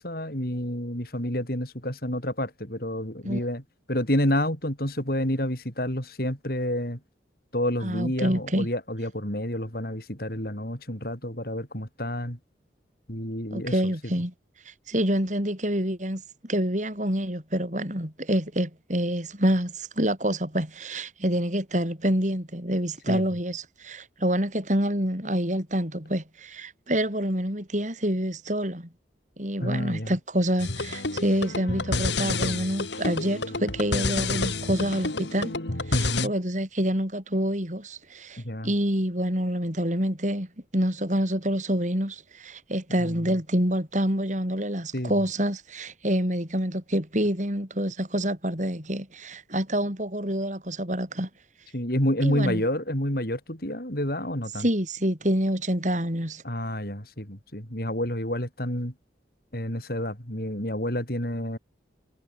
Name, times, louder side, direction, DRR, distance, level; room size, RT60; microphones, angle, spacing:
voice 1, 0.0-3.6 3.9-7.0 7.5-12.4 13.1-13.8 23.1-23.2 29.6-30.1 35.9-36.3 38.4-38.7 43.0-43.2 44.9-45.1 51.7-54.7 56.4-58.9 59.5-61.6, left 1 dB, 55° left, 7.1 m, -29 dB
voice 2, 7.8-8.7 13.5-14.3 14.6-28.9 29.4-35.5 35.9-51.3 52.2-52.6 54.6-56.4, equal, 40° right, 6.3 m, -27 dB
sound 1, 30.6-36.3, left 3 dB, 75° left, 3.1 m, -29 dB
head